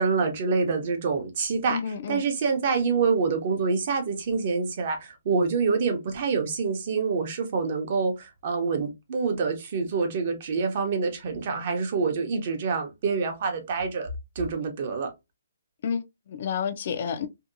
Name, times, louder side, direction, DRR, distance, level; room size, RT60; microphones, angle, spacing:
voice 1, 0.0-1.8 2.1-14.1 14.4-15.1, right 4 dB, 40° right, 0.6 m, -26 dB
voice 2, 1.7-2.2 15.8-17.3, left 7 dB, 45° left, 0.3 m, -30 dB
2.6 x 2.2 x 2.5 m
hypercardioid pair, 165°, 0 cm